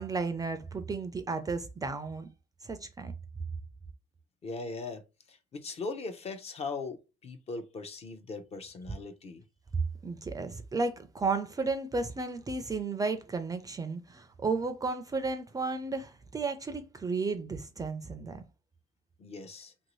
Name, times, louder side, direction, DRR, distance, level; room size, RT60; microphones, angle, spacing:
voice 1, 0.0-2.3 2.6-3.1 10.0-18.4, right 4 dB, 20° right, 0.4 m, -33 dB
voice 2, 4.4-5.0 5.3-9.4 19.2-19.7, left 3 dB, 40° left, 0.7 m, -39 dB
2.9 x 2.7 x 3.0 m
cardioid pair, 110°, 17 cm